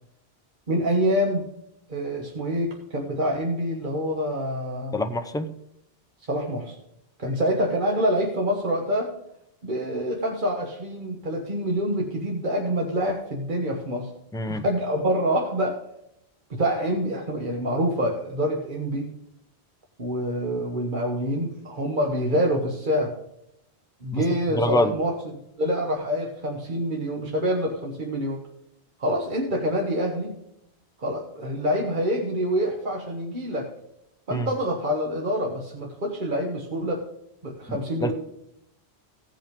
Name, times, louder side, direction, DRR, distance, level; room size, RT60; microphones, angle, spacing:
voice 1, 0.7-1.5 1.9-5.0 6.3-6.8 7.2-9.1 9.6-14.1 14.5-15.8 16.5-19.1 20.0-23.1 24.0-25.1 25.6-28.4 29.0-30.3 31.0-33.7 34.3-37.0 37.4-38.1, equal, 50° right, 0 dB, 1.4 m, -26 dB
voice 2, 4.9-5.6 14.3-14.6 24.1-24.2 24.5-24.9 34.3-34.5 37.7-38.1, left 1 dB, 5° left, 8 dB, 0.5 m, -26 dB
16.0 x 5.6 x 5.2 m, 0.79 s
omnidirectional pair, 1.1 m